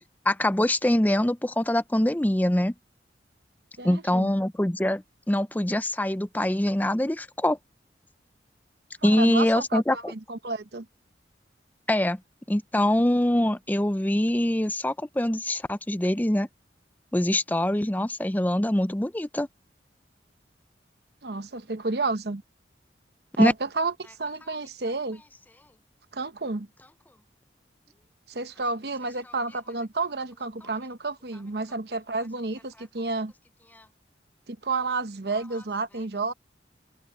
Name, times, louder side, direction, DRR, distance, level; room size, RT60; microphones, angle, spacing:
voice 1, 0.3-2.7 3.8-7.6 9.0-10.1 11.9-12.2 12.5-16.5 17.1-19.5 23.4-23.5, left 1 dB, 10° left, 0.5 m, -24 dB
voice 2, 3.8-4.3 9.0-10.9 21.2-22.4 23.4-25.2 26.1-26.7 28.3-33.3 34.5-36.3, right 3 dB, 65° right, 1.0 m, -31 dB
open air
head